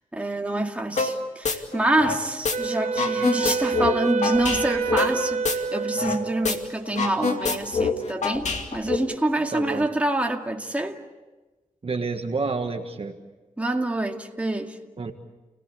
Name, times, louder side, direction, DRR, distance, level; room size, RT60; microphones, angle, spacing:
voice 1, 0.1-11.0 13.6-14.8, right 1 dB, 10° right, 2.2 m, -26 dB
sound 1, 1.0-1.2 1.4-2.6 2.8-6.2 6.4-6.6 6.9-9.0, left 4 dB, 60° left, 2.4 m, -26 dB
Wind instrument woodwind instrument, 2.5-6.8, right 4 dB, 70° right, 2.6 m, -28 dB
voice 2, 9.5-9.9 11.8-13.2 15.0-15.1, right 4 dB, 45° right, 1.6 m, -29 dB
30.0 x 18.0 x 8.4 m
wide cardioid pair, 90°, 14 cm